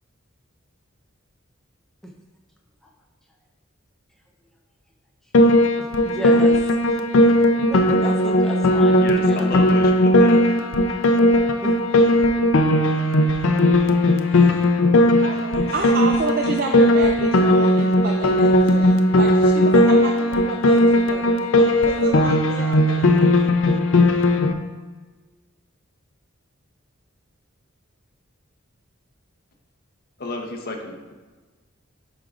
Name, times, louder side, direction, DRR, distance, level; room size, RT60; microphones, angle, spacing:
Piano, 5.3-24.5, left 1 dB, 70° left, 0.5 m, -17 dB
voice 1, 5.8-6.6 6.9-7.1 7.7-9.6 11.6-11.8, equal, ahead, 0 dB, 0.7 m, -33 dB
voice 2, 9.0-10.6 30.2-31.1, left 2 dB, 45° left, 1 dB, 0.8 m, -31 dB
voice 3, 14.3-14.7 15.2-23.7, right 4 dB, 45° right, 3 dB, 0.4 m, -31 dB
10.5 x 5.1 x 2.5 m, 1.3 s
head